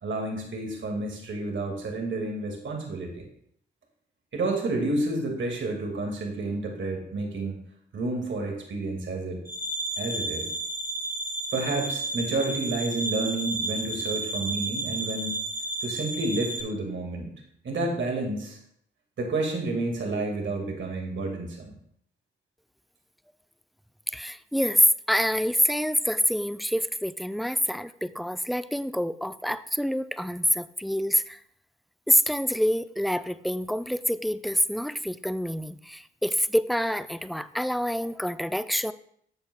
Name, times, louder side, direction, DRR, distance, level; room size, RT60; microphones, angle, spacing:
voice 1, 0.0-3.2 4.3-7.6 7.9-9.4 10.0-10.5 11.5-15.4 15.8-17.3 17.6-18.6 19.2-21.7, right 2 dB, 65° right, 1 dB, 1.9 m, -30 dB
sound 1, 9.5-16.6, right 2 dB, 45° right, 2.2 m, -32 dB
voice 2, 24.1-31.4 32.1-38.9, equal, ahead, 14 dB, 0.4 m, -26 dB
11.5 x 7.0 x 2.2 m, 0.67 s
supercardioid pair, 45°, 21 cm